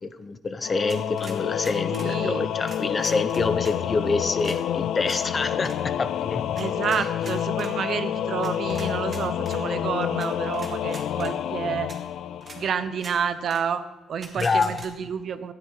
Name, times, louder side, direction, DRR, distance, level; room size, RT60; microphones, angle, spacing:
voice 1, 0.0-6.4 14.4-14.8, left 4 dB, 25° left, 12 dB, 0.7 m, -26 dB
Singing / Musical instrument, 0.6-13.1, left 10 dB, 70° left, 0.4 m, -28 dB
sound 1, 0.9-2.1 2.6-3.8 4.4-4.6 5.0-5.2 5.6-5.8 6.6-7.7 8.4-9.6 10.2-10.3 10.5-11.3 11.9-12.0 12.4-12.6 13.0-13.2 13.5-13.6 14.2-14.9, right 3 dB, 30° right, 2.0 m, -43 dB
voice 2, 1.9-2.4 6.6-11.9 12.5-13.8 14.1-15.5, right 7 dB, 50° right, 12 dB, 0.7 m, -29 dB
13.5 x 9.7 x 4.8 m, 1.1 s
cardioid pair, 140°, 0 cm